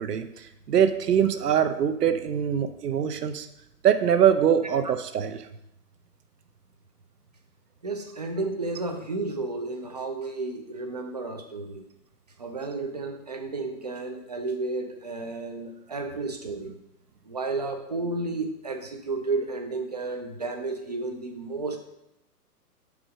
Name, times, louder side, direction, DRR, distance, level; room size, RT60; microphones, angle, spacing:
voice 1, 0.0-3.5 3.8-5.5, right 8 dB, 75° right, 8 dB, 0.9 m, -23 dB
voice 2, 7.8-11.9 12.4-16.8 17.3-21.8, right 3 dB, 30° right, 5 dB, 0.4 m, -32 dB
6.3 x 4.9 x 4.8 m, 0.83 s
hypercardioid pair, 150°, 48 cm